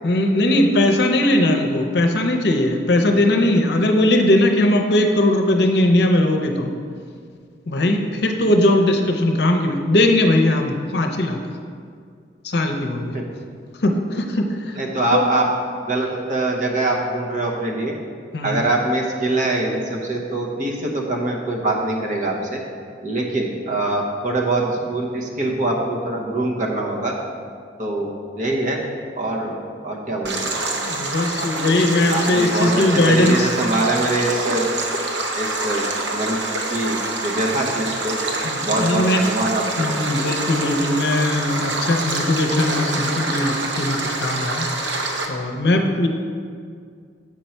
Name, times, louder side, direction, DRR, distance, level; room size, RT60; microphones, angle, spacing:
voice 1, 0.0-6.7 7.7-11.4 12.4-13.1 13.8-14.8 15.1-15.2 18.3-18.6 30.9-33.5 38.4-39.2 39.8-44.7 45.3-46.1, left 1 dB, 60° left, 4 dB, 0.6 m, -19 dB
voice 2, 14.7-15.5 15.8-17.9 18.4-22.6 23.0-27.1 27.8-28.8 29.2-30.6 32.1-34.7 35.3-36.4 36.7-38.2 38.6-39.9, right 2 dB, 45° right, -1 dB, 0.9 m, -23 dB
Stream, 30.2-45.3, right 2 dB, 75° right, 0.8 m, -26 dB
7.6 x 5.3 x 4.4 m, 2.2 s
head